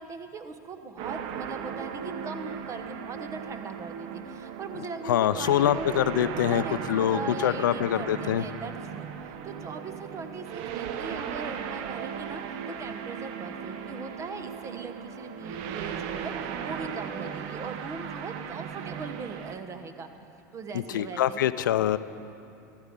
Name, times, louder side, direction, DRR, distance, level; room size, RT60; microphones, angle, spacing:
voice 1, 0.0-5.9 6.5-20.1 20.5-21.4 21.8-22.0, right 4 dB, 30° right, 8 dB, 1.1 m, -40 dB
sound 1, 1.0-19.6, right 7 dB, 55° right, 0.9 m, -37 dB
voice 2, 5.1-6.6 6.9-8.4 20.9-22.0, left 11 dB, 90° left, 15 dB, 0.4 m, -24 dB
15.0 x 13.0 x 5.3 m, 2.9 s
hypercardioid pair, 105°, 10 cm